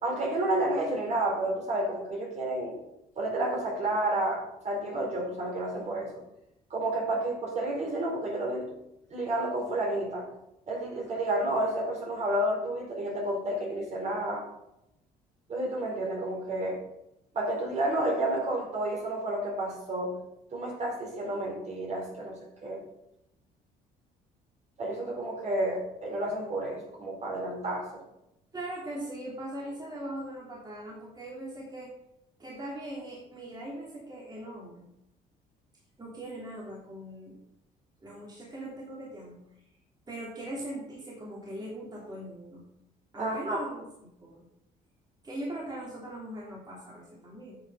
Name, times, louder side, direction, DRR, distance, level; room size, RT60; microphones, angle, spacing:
voice 1, 0.0-2.8 3.2-6.1 6.7-8.7 9.1-10.3 10.7-14.4 15.5-16.8 17.3-20.2 20.5-22.8 24.8-28.0 43.2-43.6, right 1 dB, 45° right, -1 dB, 4.3 m, -30 dB
voice 2, 28.5-31.9 32.4-34.9 36.0-37.3 38.0-39.4 40.1-42.6 43.1-43.9 44.2-44.5 45.2-47.6, right 1 dB, 25° right, -5 dB, 3.1 m, -40 dB
9.6 x 6.8 x 5.5 m, 0.86 s
cardioid pair, 110°, 17 cm